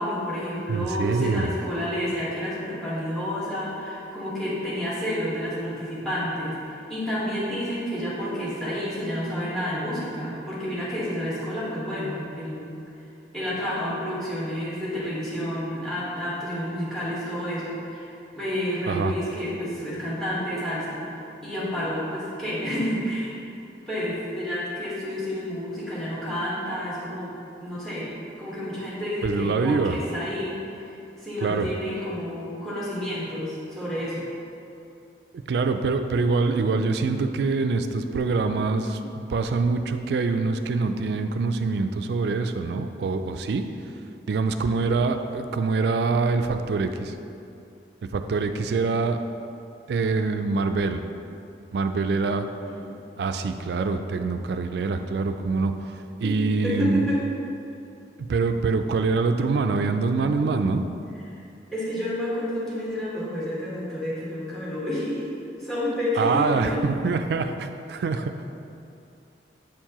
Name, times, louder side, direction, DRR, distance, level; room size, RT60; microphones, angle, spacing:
voice 1, 0.0-12.6 13.3-23.3 23.9-27.3 27.6-28.1 28.4-34.2 52.6-52.9 56.2-57.2 61.3-61.4 61.7-65.3 65.6-66.8, equal, 5° left, -8 dB, 1.4 m, -30 dB
voice 2, 0.7-1.5 18.9-19.1 29.2-30.0 31.4-31.7 35.5-43.6 44.3-47.1 48.0-49.2 49.9-51.0 51.7-52.5 53.2-55.7 56.2-57.1 58.2-60.8 66.2-68.3, right 4 dB, 70° right, 8 dB, 0.3 m, -25 dB
7.3 x 4.6 x 2.9 m, 2.7 s
head